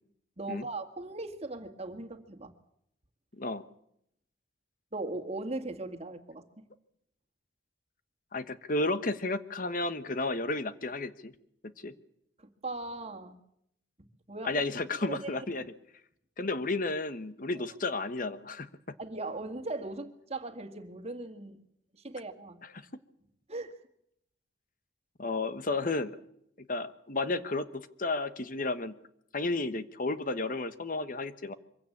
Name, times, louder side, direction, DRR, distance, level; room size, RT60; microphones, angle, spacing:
voice 1, 0.4-2.5 4.9-6.4 12.4-13.4 14.0-14.5 15.0-15.5 19.0-21.6 22.0-22.6 23.5-23.8, right 2 dB, 35° right, 7 dB, 2.0 m, -39 dB
voice 2, 8.3-11.3 11.6-11.9 14.4-15.6 16.4-18.9 22.6-22.7 25.2-26.1 26.6-29.0 29.3-31.5, left 2 dB, 45° left, 13 dB, 1.2 m, -32 dB
24.0 x 16.0 x 8.6 m, 0.73 s
head